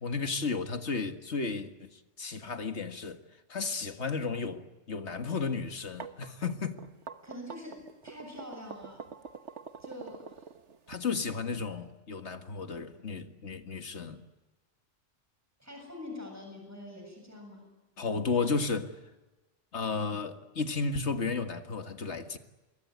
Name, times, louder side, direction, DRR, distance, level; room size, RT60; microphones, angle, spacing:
voice 1, 0.0-3.2 3.5-6.8 10.9-14.2 18.0-19.0 19.7-22.4, left 4 dB, 65° left, 2.0 m, -33 dB
sound 1, 5.7-11.0, right 6 dB, 70° right, 1.5 m, -45 dB
voice 2, 7.2-9.1 9.8-10.5 15.6-17.7, left 1 dB, 15° right, 7.5 m, -45 dB
27.5 x 22.5 x 9.4 m
omnidirectional pair, 1.2 m